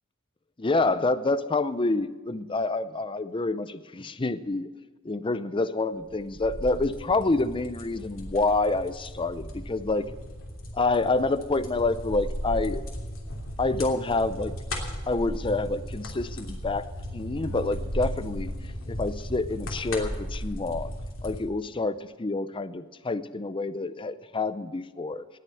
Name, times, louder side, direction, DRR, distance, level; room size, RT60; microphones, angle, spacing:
voice 1, 0.6-4.7 5.0-10.1 10.7-12.8 13.6-14.5 15.1-18.5 18.9-20.9 21.2-25.4, left 3 dB, 25° left, 13 dB, 0.6 m, -27 dB
sound 1, 6.0-21.4, equal, 70° left, 3.0 m, -36 dB
sound 2, 16.2-20.8, left 1 dB, 75° right, 4.0 m, -43 dB
19.0 x 6.7 x 8.9 m, 1.3 s
head